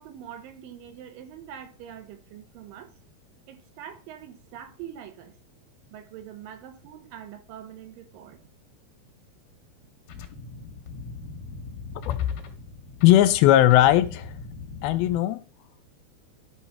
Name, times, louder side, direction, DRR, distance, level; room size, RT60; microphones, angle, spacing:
voice 1, 0.0-2.9 3.5-5.4 5.9-8.4, right 10 dB, 70° right, 2.4 m, -43 dB
sound 1, 10.1-15.2, left 4 dB, 65° left, 1.9 m, -41 dB
voice 2, 13.0-14.3 14.8-15.4, left 13 dB, 80° left, 2.4 m, -18 dB
11.0 x 4.0 x 5.8 m
omnidirectional pair, 4.6 m